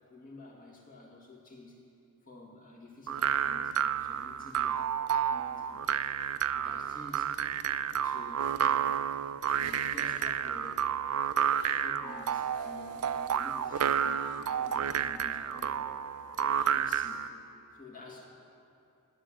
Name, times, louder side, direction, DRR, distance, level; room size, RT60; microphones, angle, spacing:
voice 1, 0.0-1.8 2.2-6.2 6.5-7.4 7.8-9.1 9.6-10.9 11.7-16.0 16.3-17.3 17.7-18.3, left 2 dB, 40° left, -1 dB, 2.1 m, -50 dB
sound 1, 3.1-17.3, right 8 dB, 80° right, 0.4 m, -30 dB
Wind instrument woodwind instrument, 11.6-16.6, left 2 dB, ahead, 2.1 m, -55 dB
14.0 x 7.5 x 9.9 m, 2.6 s
head